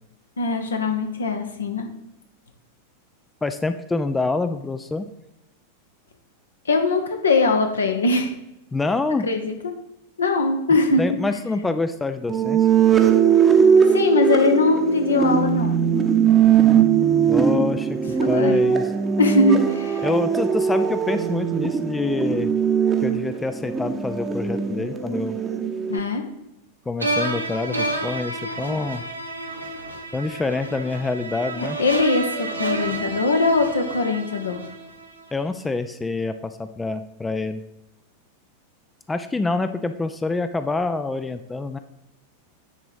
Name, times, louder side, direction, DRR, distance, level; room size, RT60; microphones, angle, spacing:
voice 1, 0.4-1.9 6.7-8.3 9.2-9.7 10.2-11.0 13.9-15.8 18.3-18.6 19.2-20.1 25.9-26.2 31.6-34.6, left 3 dB, 70° left, 4 dB, 1.1 m, -21 dB
voice 2, 3.4-5.1 8.7-9.3 11.0-12.7 17.3-18.0 18.3-18.9 20.0-22.5 23.0-25.4 26.9-29.0 30.1-31.8 35.3-37.6 39.1-41.8, left 3 dB, 10° left, 10 dB, 0.4 m, -26 dB
sound 1, 12.3-26.0, right 7 dB, 15° right, 0.9 m, -20 dB
sound 2, 27.0-35.2, right 2 dB, 80° right, 1.0 m, -30 dB
9.6 x 3.9 x 4.8 m, 0.93 s
figure-of-eight pair, 90°, 0 cm